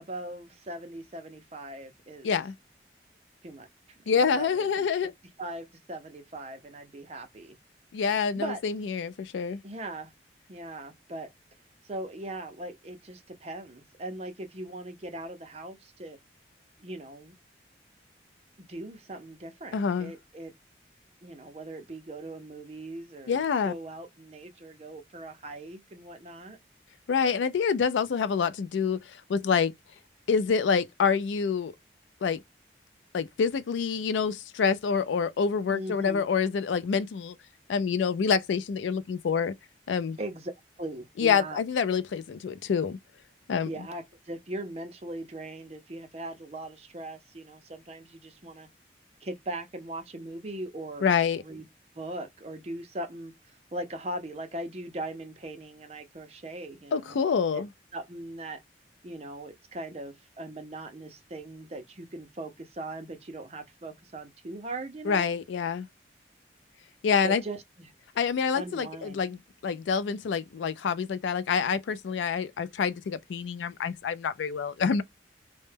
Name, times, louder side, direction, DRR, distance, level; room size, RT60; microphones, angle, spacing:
voice 1, 0.0-2.3 3.4-3.7 4.1-4.9 5.4-7.6 8.3-8.6 9.6-10.1 10.5-11.3 11.8-16.2 16.8-17.3 18.6-20.5 21.2-26.6 35.7-36.2 40.2-40.5 40.8-41.6 43.6-48.7 49.2-51.1 51.4-51.6 52.0-53.3 53.7-57.2 57.5-57.6 57.9-58.6 59.0-65.3 67.2-67.9 68.5-69.2, right 1 dB, 35° right, 0.5 m, -39 dB
voice 2, 2.2-2.5 4.1-5.1 7.9-9.6 19.7-20.1 23.3-23.7 27.1-29.7 30.3-31.7 32.2-32.4 33.1-37.4 37.7-39.5 39.9-40.2 41.2-43.0 43.5-43.7 51.0-51.4 56.9-57.7 65.1-65.9 67.0-67.4 68.2-75.0, left 6 dB, 90° left, 0.4 m, -27 dB
2.1 x 2.1 x 3.1 m
head